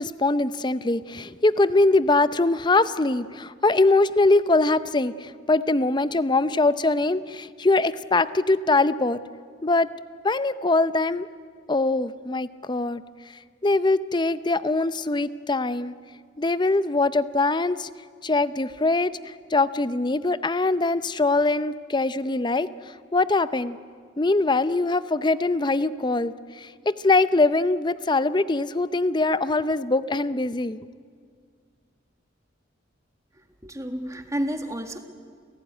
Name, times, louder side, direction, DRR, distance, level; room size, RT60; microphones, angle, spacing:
voice 1, 0.0-9.2 9.6-9.9 10.2-11.3 11.7-13.0 13.6-15.9 16.4-17.9 18.2-22.7 23.1-23.8 24.2-30.8, left 2 dB, 25° left, 14 dB, 0.6 m, -22 dB
voice 2, 33.6-35.0, equal, 15° right, 6 dB, 1.6 m, -30 dB
29.5 x 17.5 x 9.5 m, 2.1 s
head